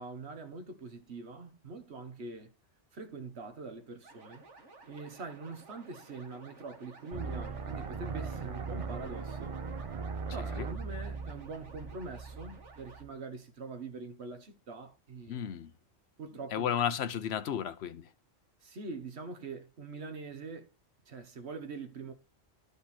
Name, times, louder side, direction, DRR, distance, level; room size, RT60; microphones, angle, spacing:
voice 1, 0.0-2.5 2.9-4.4 4.9-9.6 10.3-15.4 16.2-16.7 18.6-20.7 21.1-22.1, right 3 dB, 65° right, 1.5 m, -44 dB
sound 1, 4.0-13.0, right 3 dB, 80° right, 2.2 m, -55 dB
sound 2, 7.1-13.1, right 5 dB, 35° right, 0.6 m, -39 dB
voice 2, 15.3-15.7 16.5-18.1, left 9 dB, 65° left, 1.0 m, -33 dB
11.5 x 5.2 x 4.3 m
omnidirectional pair, 1.2 m